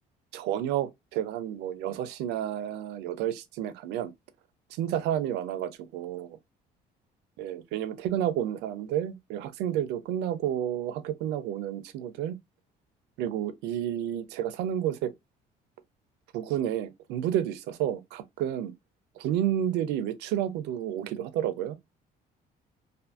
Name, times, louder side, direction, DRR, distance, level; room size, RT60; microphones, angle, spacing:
voice 1, 0.3-4.1 4.7-6.4 7.4-12.4 13.2-15.1 16.3-18.7 19.2-21.8, right 11 dB, 90° right, 0.4 m, -30 dB
2.5 x 2.5 x 2.3 m
cardioid pair, 110°, 17 cm